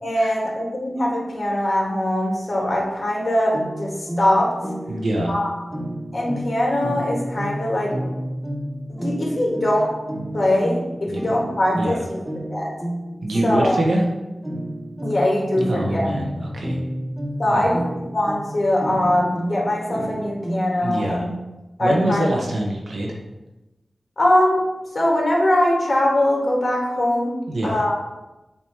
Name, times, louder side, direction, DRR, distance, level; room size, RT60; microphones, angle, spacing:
voice 1, 0.0-4.5 5.3-5.5 6.1-7.9 8.9-9.9 10.3-12.2 12.5-12.7 13.4-13.8 15.0-16.1 17.4-21.3 21.8-22.2 24.2-24.6 24.9-27.9, left 1 dB, 45° left, -3 dB, 2.0 m, -21 dB
sound 1, 3.5-21.0, right 1 dB, 10° right, 0.9 m, -31 dB
voice 2, 4.9-5.3 11.1-11.2 11.8-12.0 13.2-14.1 15.6-16.8 17.5-17.7 20.8-21.3 21.8-23.1 27.5-27.8, right 1 dB, 85° right, -1 dB, 1.2 m, -24 dB
7.0 x 3.0 x 4.7 m, 1.0 s
wide cardioid pair, 65°, 0 cm